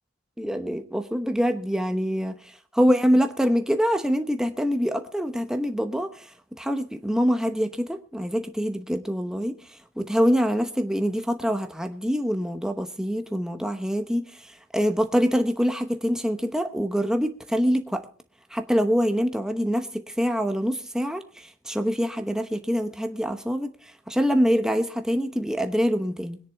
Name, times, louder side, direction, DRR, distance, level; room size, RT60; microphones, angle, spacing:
voice 1, 0.4-2.4 2.7-6.3 6.6-9.5 10.0-14.3 14.7-18.0 18.5-19.9 20.2-23.7 24.1-26.4, equal, 5° right, 0.9 m, -25 dB
22.5 x 10.0 x 3.5 m
head